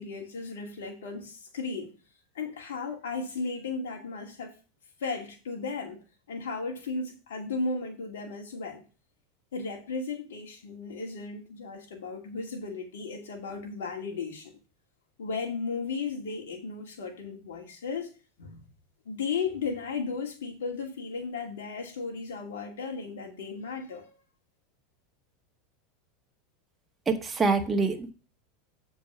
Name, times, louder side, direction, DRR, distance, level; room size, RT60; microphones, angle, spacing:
voice 1, 0.0-1.9 2.3-4.5 5.0-6.0 6.3-8.8 9.5-14.6 15.2-18.1 18.4-18.6 19.1-24.1, left 4 dB, 85° left, 2.3 m, -35 dB
voice 2, 27.1-28.1, right 4 dB, 20° right, 1.5 m, -25 dB
7.6 x 4.6 x 5.7 m
supercardioid pair, 110°, 0 cm